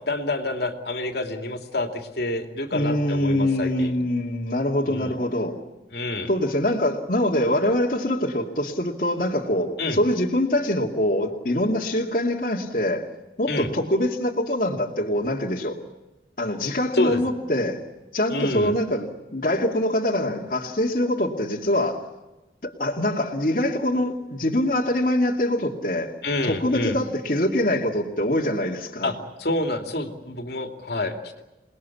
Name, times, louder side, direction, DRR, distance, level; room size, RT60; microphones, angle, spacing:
voice 1, 0.1-3.9 4.9-5.2 5.9-6.3 9.8-10.0 13.5-13.7 16.9-17.2 18.3-18.8 26.2-27.0 29.0-31.4, left 2 dB, 65° left, 2.9 m, -28 dB
voice 2, 2.7-5.6 6.3-13.1 13.4-15.8 16.4-17.8 18.1-22.0 22.6-26.1 26.4-29.1, left 1 dB, 50° left, 2.5 m, -24 dB
28.0 x 20.5 x 8.6 m
head